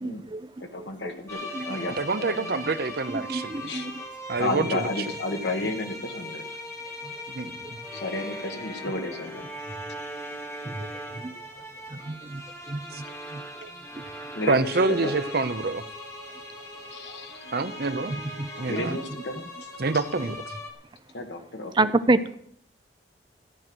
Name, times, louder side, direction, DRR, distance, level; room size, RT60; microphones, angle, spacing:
voice 1, 0.0-0.4 1.5-1.8 3.3-3.9 10.7-10.8 11.2-11.3 12.1-12.4 12.7-12.8 13.3-13.4 18.4-18.5 21.8-22.4, right 2 dB, 25° right, 12 dB, 0.5 m, -26 dB
voice 2, 0.6-2.4 3.6-3.9 4.4-6.5 7.9-9.5 14.3-15.1 16.9-17.5 18.6-19.7 21.1-21.9, left 2 dB, 70° left, 5 dB, 1.7 m, -32 dB
sound 1, 1.3-20.7, left 1 dB, 15° left, 2.3 m, -39 dB
voice 3, 1.9-3.7 4.3-4.9 7.3-7.5 12.9-13.0 13.6-13.7 14.5-15.8 17.5-18.1 18.6-19.0 19.8-20.4, right 3 dB, 55° right, 12 dB, 0.8 m, -27 dB
14.5 x 9.2 x 6.2 m, 0.66 s
head